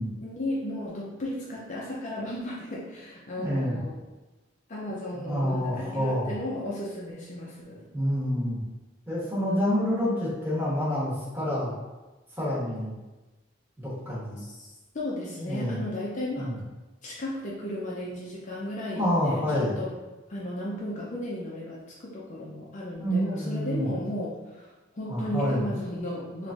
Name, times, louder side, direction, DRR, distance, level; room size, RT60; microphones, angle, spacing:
voice 1, 0.2-4.0 4.7-7.9 14.4-16.5 17.0-20.0 20.3-26.5, left 1 dB, 35° left, -5 dB, 0.5 m, -35 dB
voice 2, 3.4-3.8 5.1-6.3 7.9-8.6 9.1-11.7 12.4-13.0 13.8-14.4 15.4-15.8 16.4-16.6 18.9-19.8 23.0-23.9 25.1-25.6, equal, 10° right, -9 dB, 1.2 m, -28 dB
3.2 x 2.5 x 3.5 m, 1.1 s
head